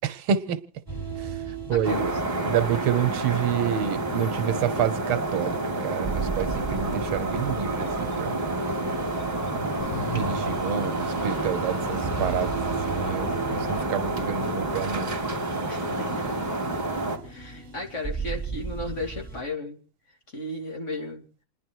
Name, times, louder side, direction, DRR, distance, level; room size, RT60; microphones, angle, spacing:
voice 1, 0.0-0.6 1.2-8.4 10.1-15.1 15.5-15.6, right 8 dB, 85° right, 1.8 m, -28 dB
sound 1, 0.9-19.4, right 4 dB, 5° left, 6.2 m, -37 dB
voice 2, 1.7-2.1 15.7-16.3 17.2-19.8 20.3-21.2, left 1 dB, 35° left, 3.0 m, -34 dB
sound 2, 1.8-17.2, right 2 dB, 20° right, 2.2 m, -29 dB
sound 3, 9.8-11.7, left 7 dB, 65° left, 1.9 m, -38 dB
28.0 x 10.5 x 4.6 m
omnidirectional pair, 2.3 m